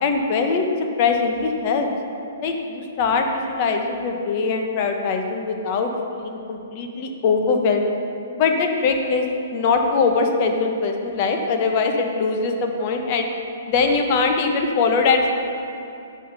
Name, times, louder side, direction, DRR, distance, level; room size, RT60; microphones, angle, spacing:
voice 1, 0.0-0.7 1.0-1.9 2.4-7.9 8.3-9.2 9.5-13.3 13.7-15.4, left 4 dB, 40° left, 4 dB, 1.0 m, -21 dB
8.5 x 5.6 x 5.5 m, 2.6 s
hypercardioid pair, 140°, 0 cm